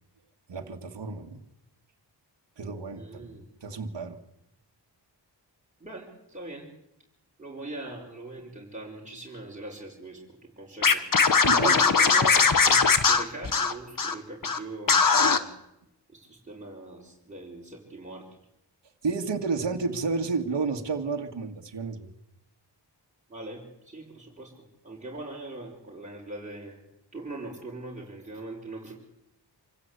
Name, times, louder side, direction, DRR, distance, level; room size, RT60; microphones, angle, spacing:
voice 1, 0.5-1.4 2.6-3.3 3.6-4.2 11.4-11.8 19.0-22.1, right 4 dB, 75° right, 3 dB, 2.1 m, -31 dB
voice 2, 3.0-3.4 5.8-6.7 7.4-11.0 11.3-12.8 13.1-15.5 16.1-18.3 23.3-26.8 27.1-29.1, right 2 dB, 15° right, -3 dB, 5.3 m, -41 dB
Scratching (performance technique), 10.8-14.1 14.4-14.6 14.9-15.4, left 5 dB, 50° left, 1.5 m, -20 dB
26.5 x 16.0 x 8.3 m, 0.85 s
wide cardioid pair, 80°, 43 cm